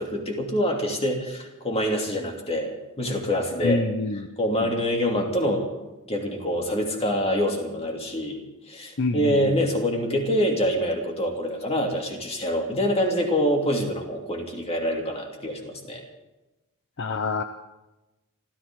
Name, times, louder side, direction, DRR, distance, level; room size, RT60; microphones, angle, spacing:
voice 1, 0.0-3.8 4.4-5.7 6.1-8.4 8.7-16.0, equal, 30° left, 1 dB, 2.8 m, -25 dB
voice 2, 3.6-4.3 4.6-4.7 9.0-9.5 17.0-17.4, left 3 dB, 55° left, 8 dB, 0.8 m, -26 dB
26.5 x 14.0 x 3.8 m, 1.0 s
head